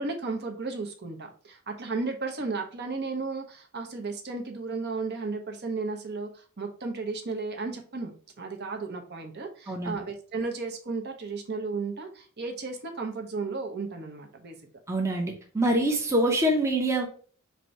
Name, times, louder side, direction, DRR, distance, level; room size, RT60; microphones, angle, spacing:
voice 1, 0.0-14.6, right 3 dB, 50° right, 4 dB, 0.8 m, -34 dB
voice 2, 9.7-10.0 14.9-17.1, right 1 dB, 15° right, 1 dB, 0.7 m, -25 dB
4.4 x 2.6 x 4.4 m, 0.42 s
head